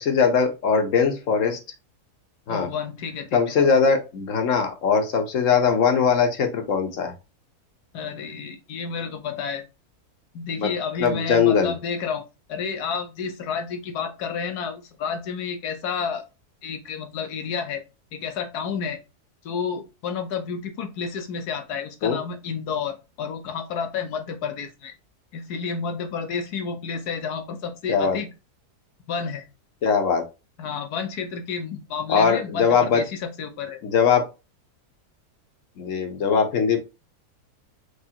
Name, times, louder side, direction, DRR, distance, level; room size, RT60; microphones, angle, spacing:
voice 1, 0.0-1.6 2.5-2.7 3.3-7.1 10.6-10.7 11.0-11.7 22.0-22.2 27.9-28.2 29.8-30.3 32.1-33.0 33.8-34.3 35.8-36.8, left 6 dB, 55° left, 5 dB, 1.2 m, -21 dB
voice 2, 2.5-3.3 3.6-3.7 7.9-9.6 10.3-16.3 16.6-17.8 18.1-19.0 19.4-24.9 25.3-28.3 29.1-29.5 30.6-33.8, left 6 dB, 75° left, 6 dB, 1.4 m, -30 dB
4.9 x 3.2 x 2.8 m, 0.27 s
omnidirectional pair, 1.7 m